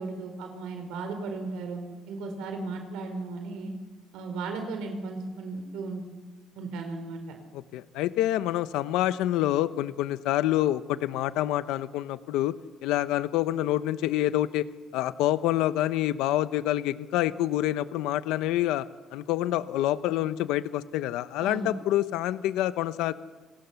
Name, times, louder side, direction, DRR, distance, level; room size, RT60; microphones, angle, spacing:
voice 1, 0.0-1.8 2.1-3.7 4.1-6.0 6.6-7.4 21.4-21.7, right 3 dB, 80° right, 5 dB, 4.4 m, -35 dB
voice 2, 7.5-12.6 12.8-14.7 14.9-18.8 19.1-23.1, left 14 dB, 90° left, 13 dB, 0.9 m, -27 dB
29.0 x 26.0 x 7.1 m, 1.3 s
cardioid pair, 175°, 0 cm